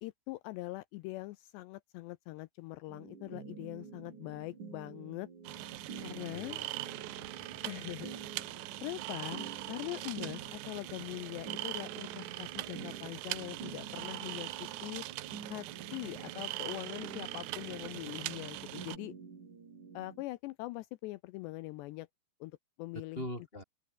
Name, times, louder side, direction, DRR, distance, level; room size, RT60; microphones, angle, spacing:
voice 1, 0.0-5.3 6.0-6.6 7.6-8.5 8.8-15.0 15.5-15.7 15.9-19.1 19.9-22.1 22.4-23.3, left 19 dB, 80° left, 2.5 m, -42 dB
sound 1, 2.9-20.2, right 5 dB, 40° right, 5.5 m, -49 dB
sound 2, 5.4-19.0, right 18 dB, 75° right, 2.7 m, -42 dB
voice 2, 6.3-6.7 7.0-7.9 22.9-23.6, left 1 dB, 10° left, 5.7 m, -44 dB
open air
omnidirectional pair, 5.5 m